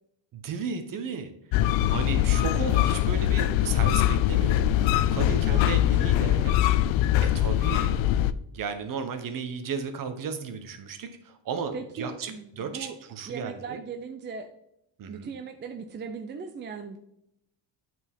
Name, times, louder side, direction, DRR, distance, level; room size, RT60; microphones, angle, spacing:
voice 1, 0.3-1.3 1.9-6.6 7.2-7.9 8.5-13.8 15.0-15.3, right 6 dB, 45° right, 8 dB, 1.1 m, -34 dB
sound 1, 1.5-8.3, left 12 dB, 75° left, 0.5 m, -22 dB
voice 2, 5.1-6.1 6.4-6.6 11.7-13.0 13.3-14.5 15.1-17.0, right 5 dB, 25° right, 6 dB, 0.5 m, -39 dB
8.7 x 4.5 x 3.6 m, 0.80 s
cardioid pair, 120°, 46 cm